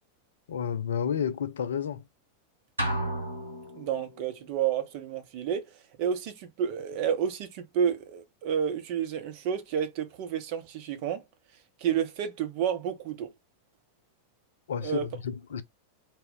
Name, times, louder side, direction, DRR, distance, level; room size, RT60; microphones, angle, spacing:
voice 1, 0.5-2.0 14.7-15.6, left 7 dB, 65° left, 0.4 m, -31 dB
sound 1, 2.8-4.2, right 1 dB, 75° right, 0.9 m, -32 dB
voice 2, 3.8-5.7 6.0-11.2 11.8-13.3 14.8-15.1, right 8 dB, 45° right, 0.7 m, -30 dB
2.1 x 2.1 x 3.7 m
figure-of-eight pair, 90°, 0 cm